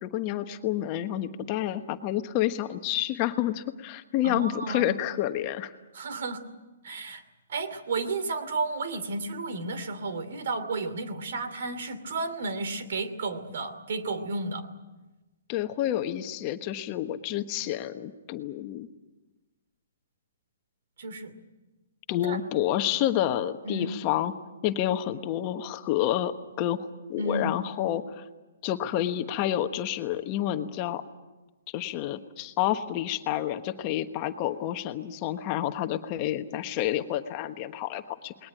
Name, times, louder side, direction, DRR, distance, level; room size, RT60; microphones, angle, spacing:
voice 1, 0.0-5.7 15.5-18.9 22.1-24.3 24.6-28.2 28.6-31.0 31.7-38.5, left 12 dB, 30° left, 8 dB, 1.2 m, -29 dB
voice 2, 4.2-5.0 5.9-6.4 6.8-7.2 7.5-14.7 21.0-21.3 22.2-22.4 23.6-24.0 27.2-27.6, right 3 dB, 65° right, 11 dB, 2.7 m, -32 dB
20.5 x 20.0 x 10.0 m, 1.1 s
hypercardioid pair, 155°, 0 cm